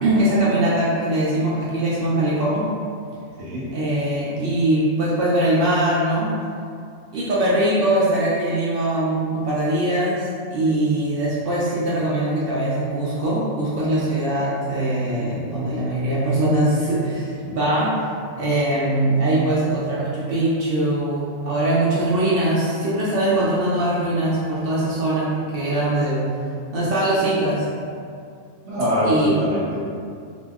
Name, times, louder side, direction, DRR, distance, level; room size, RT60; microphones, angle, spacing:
voice 1, 0.0-2.7 3.7-6.4 7.1-18.0 18.4-26.3 26.7-27.7 29.0-29.4, right 1 dB, 80° right, -8 dB, 0.5 m, -21 dB
voice 2, 28.6-29.8, equal, 55° right, -10 dB, 1.0 m, -23 dB
2.9 x 2.6 x 2.3 m, 2.3 s
omnidirectional pair, 1.6 m